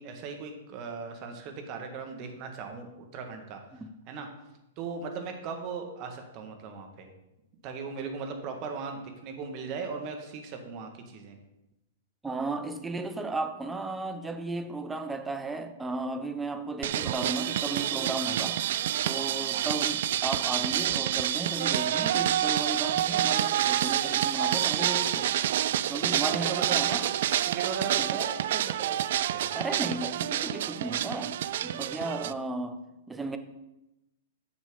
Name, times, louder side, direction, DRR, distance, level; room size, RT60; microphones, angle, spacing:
voice 1, 0.0-3.6 4.1-4.3 4.8-7.1 7.6-11.4 26.3-27.0 27.5-29.5, right 5 dB, 40° right, 1.8 m, -38 dB
voice 2, 12.2-18.6 19.0-25.3 25.9-27.1 28.0-28.1 29.5-32.8 33.1-33.4, right 2 dB, 10° right, 0.9 m, -34 dB
sound 1, 16.8-32.3, right 12 dB, 60° right, 0.3 m, -28 dB
10.0 x 7.1 x 3.9 m
hypercardioid pair, 115°, 0 cm